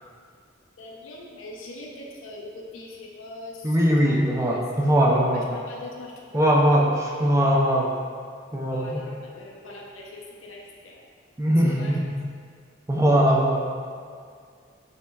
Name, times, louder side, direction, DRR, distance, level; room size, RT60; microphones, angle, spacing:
voice 1, 0.8-5.0 5.3-6.4 6.7-6.9 7.3-7.7 8.7-11.0 11.6-12.1 13.3-13.4, left 2 dB, 90° left, -2 dB, 0.7 m, -42 dB
voice 2, 3.6-5.5 6.3-7.9 8.5-9.0 11.4-12.1 12.9-13.7, equal, 15° right, -2 dB, 0.4 m, -21 dB
5.5 x 3.3 x 2.3 m, 2.1 s
head